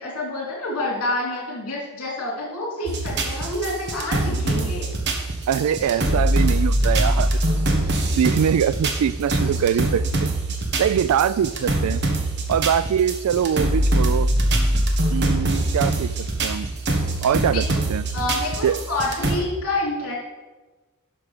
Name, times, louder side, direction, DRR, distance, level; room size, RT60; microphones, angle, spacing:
voice 1, 0.0-4.9 17.5-17.8 18.1-20.1, left 2 dB, 80° left, -2 dB, 2.9 m, -28 dB
sound 1, 2.9-19.4, right 1 dB, 50° right, 1.3 m, -23 dB
voice 2, 5.5-7.4 7.7-10.3 10.8-12.0 12.5-14.3 15.1-16.1 16.4-16.7 17.2-18.0 18.6-18.7, right 8 dB, 85° right, 17 dB, 0.3 m, -23 dB
11.0 x 6.0 x 4.9 m, 1.2 s
head